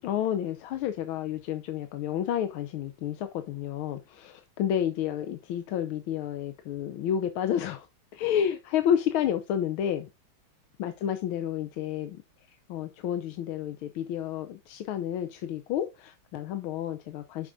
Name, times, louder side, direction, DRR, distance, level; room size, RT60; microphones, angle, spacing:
voice 1, 0.0-7.9 8.1-10.1 10.8-12.2 12.5-17.5, left 9 dB, 90° left, 1.6 m, -30 dB
7.1 x 6.4 x 3.7 m
omnidirectional pair, 2.2 m